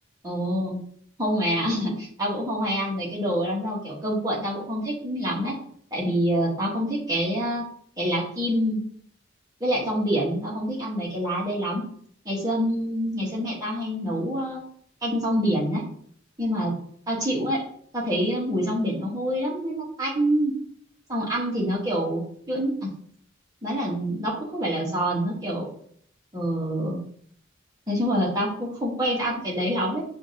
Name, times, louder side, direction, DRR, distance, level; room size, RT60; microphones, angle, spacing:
voice 1, 0.2-0.8 1.2-5.5 5.9-7.6 8.0-8.8 9.6-11.8 12.2-14.6 15.0-15.8 16.4-16.7 17.1-17.6 17.9-20.5 21.1-22.2 22.5-22.9 23.6-25.7 26.3-27.0 27.9-30.0, equal, 20° right, -6 dB, 1.3 m, -26 dB
6.9 x 2.6 x 2.8 m, 0.62 s
head